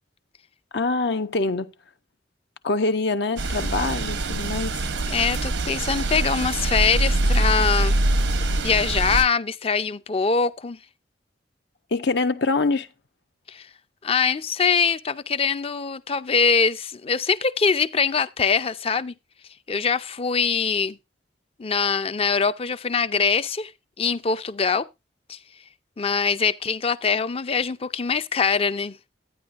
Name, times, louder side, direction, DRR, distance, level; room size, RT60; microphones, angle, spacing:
voice 1, 0.7-1.7 2.6-4.7 11.9-12.9, left 3 dB, 65° left, 0.7 m, -24 dB
sound 1, 3.4-9.2, right 2 dB, 85° right, 0.8 m, -24 dB
voice 2, 5.1-8.0 8.6-10.8 13.5-13.7 14.0-19.1 19.7-21.0 21.6-23.7 24.0-24.9 25.3-25.4 26.0-29.0, left 5 dB, 30° left, 0.5 m, -23 dB
11.5 x 9.5 x 2.5 m
head